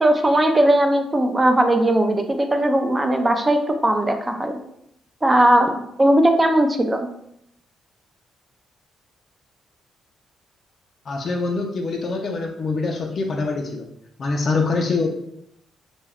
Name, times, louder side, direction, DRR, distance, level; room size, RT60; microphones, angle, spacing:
voice 1, 0.0-4.6 5.2-7.1, right 1 dB, 15° right, 5 dB, 0.4 m, -18 dB
voice 2, 11.1-13.9 14.2-15.1, left 3 dB, 50° left, 1 dB, 0.4 m, -24 dB
2.2 x 2.2 x 3.4 m, 0.76 s
cardioid pair, 90°, 0 cm